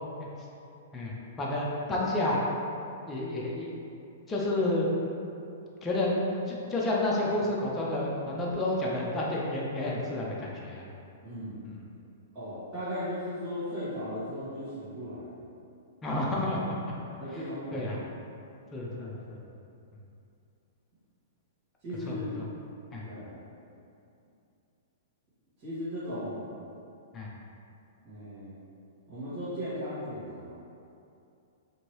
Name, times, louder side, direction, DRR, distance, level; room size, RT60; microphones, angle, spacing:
voice 1, 0.9-2.4 3.1-3.7 4.3-4.9 5.8-6.2 6.4-10.8 11.6-11.8 16.0-16.9 17.7-18.0 18.7-19.4 22.1-22.4 22.9-23.0 27.1-27.3, left 1 dB, 15° left, -4 dB, 0.4 m, -30 dB
voice 2, 11.2-11.6 12.3-15.5 17.2-17.9 18.9-19.1 21.8-22.3 23.0-23.4 25.6-26.5 28.0-28.6 29.1-30.6, equal, 30° right, -16 dB, 1.2 m, -37 dB
2.8 x 2.6 x 3.0 m, 2.7 s
hypercardioid pair, 145°, 0 cm